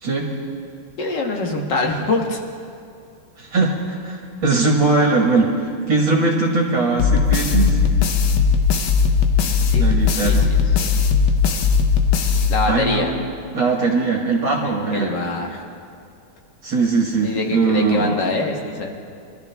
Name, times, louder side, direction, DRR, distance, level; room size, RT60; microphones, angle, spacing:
voice 1, 1.0-2.4 9.6-9.8 10.2-10.8 12.5-13.1 14.6-15.6 17.2-18.9, left 3 dB, 55° left, 2 dB, 2.0 m, -24 dB
voice 2, 3.4-7.8 9.8-10.5 12.7-13.1 13.5-15.1 16.6-18.2, right 3 dB, 65° right, -2 dB, 2.2 m, -20 dB
sound 1, 7.0-13.1, left 5 dB, 75° left, 1.7 m, -18 dB
24.0 x 13.0 x 3.5 m, 2.5 s
omnidirectional pair, 2.3 m